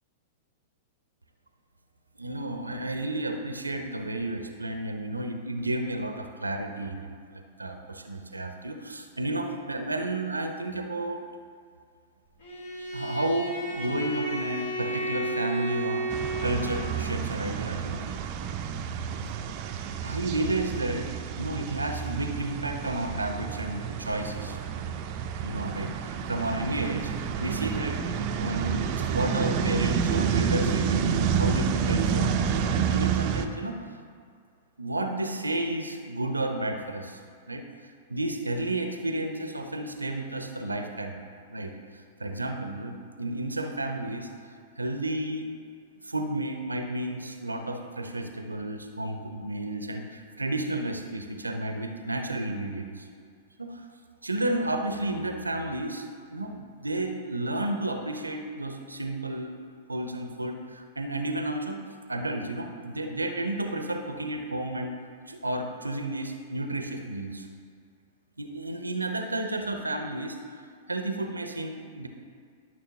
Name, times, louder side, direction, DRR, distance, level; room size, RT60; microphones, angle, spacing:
voice 1, 2.2-11.2 12.9-18.0 20.0-21.1 21.4-24.6 25.4-27.1 27.4-28.0 28.4-28.9 29.1-32.4 32.7-33.8 34.8-37.2 37.5-37.6 38.1-41.2 41.5-45.5 46.0-53.1 53.6-53.9 54.2-56.0 56.3-59.6 59.9-61.8 62.1-65.0 65.3-67.5 68.4-70.6 70.9-72.1, right 1 dB, 80° right, 6 dB, 0.6 m, -32 dB
Bowed string instrument, 12.4-17.2, right 1 dB, 50° left, 1.3 m, -33 dB
korea-bird-bus-sound, 16.1-33.5, right 7 dB, 40° right, 0.5 m, -29 dB
12.5 x 6.2 x 2.8 m, 2.1 s
figure-of-eight pair, 100°, 0 cm